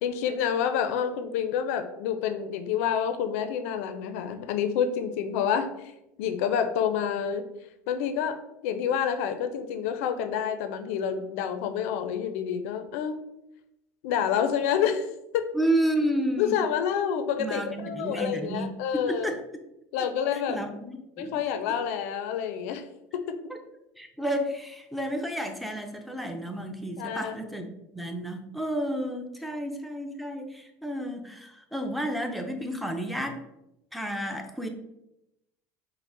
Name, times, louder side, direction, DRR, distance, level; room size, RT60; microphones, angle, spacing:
voice 1, 0.0-5.9 6.2-7.5 7.9-13.2 14.0-15.1 15.3-15.5 16.4-19.3 19.9-20.6 21.2-22.9 23.1-23.4 27.0-27.4, left 8 dB, 80° left, 8 dB, 0.4 m, -28 dB
voice 2, 15.5-16.6 17.4-19.4 20.3-21.4 23.5-23.6 24.0-27.7 27.9-33.4 33.9-34.7, right 1 dB, ahead, 4 dB, 0.5 m, -31 dB
4.7 x 2.1 x 3.8 m, 0.88 s
supercardioid pair, 115°, 8 cm